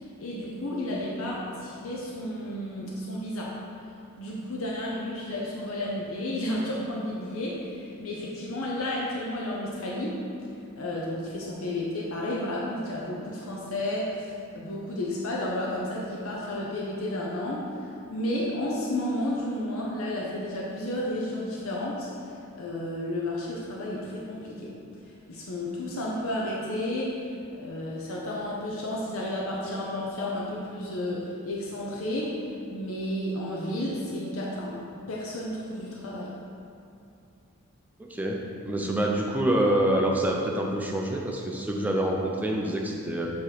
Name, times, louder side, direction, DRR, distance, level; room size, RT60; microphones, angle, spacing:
voice 1, 0.2-3.6 4.2-10.2 10.8-17.7 18.1-22.1 22.5-24.8 25.3-32.4 32.7-34.8 35.1-36.3, left 1 dB, 70° left, -4 dB, 0.7 m, -32 dB
voice 2, 38.0-43.3, right 1 dB, 5° right, -1 dB, 0.5 m, -26 dB
7.3 x 3.0 x 4.9 m, 2.6 s
head